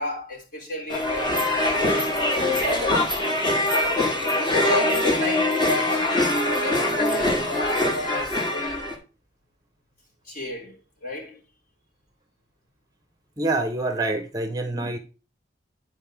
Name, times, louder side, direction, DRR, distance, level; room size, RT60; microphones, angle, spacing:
voice 1, 0.0-2.0 2.5-4.0 4.5-8.8 10.2-11.4 14.7-15.0, left 1 dB, 50° left, 3.2 m, -33 dB
sound 1, 0.9-9.0, left 1 dB, 25° left, 1.8 m, -23 dB
voice 2, 13.4-15.0, right 2 dB, 20° right, 0.8 m, -26 dB
9.3 x 4.9 x 3.5 m
head